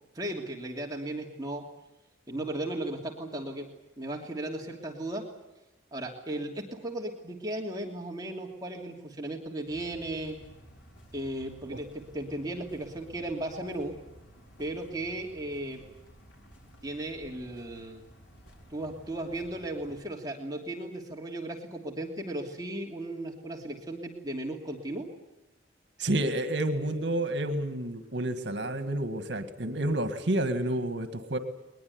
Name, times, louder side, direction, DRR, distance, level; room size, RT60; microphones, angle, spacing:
voice 1, 0.1-1.6 2.3-3.7 4.0-5.2 5.9-10.4 11.1-13.9 14.6-15.8 16.8-18.0 18.7-25.1, right 1 dB, 20° right, 0 dB, 2.9 m, -36 dB
sound 1, 9.7-20.1, equal, 90° left, 4.7 m, -54 dB
voice 2, 26.0-31.4, right 1 dB, 75° right, 8 dB, 1.9 m, -29 dB
21.5 x 21.0 x 9.6 m, 0.96 s
head